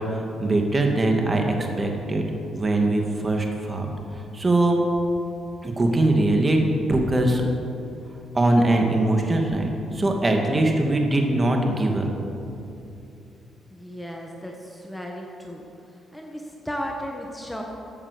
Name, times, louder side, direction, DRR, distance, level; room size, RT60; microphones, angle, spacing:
voice 1, 0.0-1.4 1.8-2.3 2.5-3.9 4.3-4.8 5.6-6.6 6.9-7.4 8.3-12.1, right 2 dB, 25° right, 2 dB, 2.2 m, -21 dB
voice 2, 13.7-15.6 15.9-17.6, equal, 5° left, 0 dB, 1.5 m, -35 dB
15.0 x 8.7 x 6.9 m, 2.7 s
cardioid pair, 90°, 0 cm